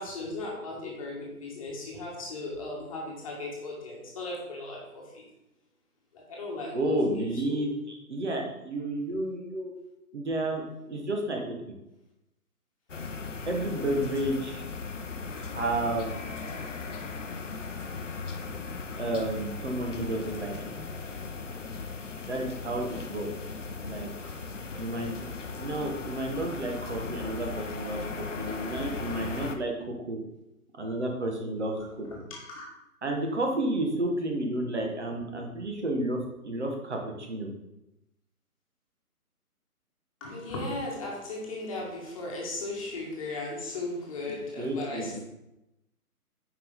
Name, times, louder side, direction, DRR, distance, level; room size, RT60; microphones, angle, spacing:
voice 1, 0.0-5.3 6.1-6.9 7.4-7.6 24.7-24.8 32.3-32.7 40.2-45.2, left 2 dB, 25° left, -3 dB, 1.4 m, -37 dB
voice 2, 6.7-9.7 10.1-11.4 13.5-14.6 15.3-16.2 19.0-20.5 22.3-23.3 23.9-24.1 24.8-25.3 25.6-29.7 30.1-30.2 30.8-32.1 33.0-37.5 44.3-45.2, right 1 dB, 50° right, 1 dB, 1.4 m, -31 dB
sound 1, 12.9-29.6, left 4 dB, 55° left, 0.8 m, -37 dB
8.2 x 5.1 x 3.6 m, 0.90 s
figure-of-eight pair, 140°, 45 cm